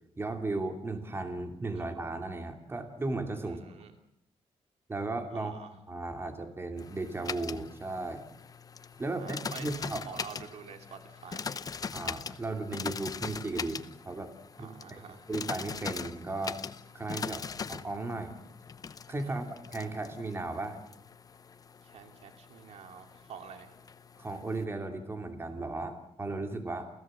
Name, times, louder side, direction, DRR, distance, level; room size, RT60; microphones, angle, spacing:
voice 1, 0.2-3.8 4.9-5.5 5.9-8.2 9.0-10.0 11.9-14.3 14.6-15.0 15.3-16.6 16.9-18.3 19.1-20.8 24.2-26.9, right 2 dB, 20° right, 5 dB, 2.7 m, -36 dB
voice 2, 3.4-3.9 5.3-5.8 9.0-11.6 14.6-15.2 19.2-19.4 21.8-23.7, right 7 dB, 70° right, 6 dB, 2.8 m, -48 dB
sound 1, 6.8-24.6, left 5 dB, 35° left, 0.8 m, -42 dB
29.0 x 16.5 x 7.8 m, 0.80 s
cardioid pair, 135°, 11 cm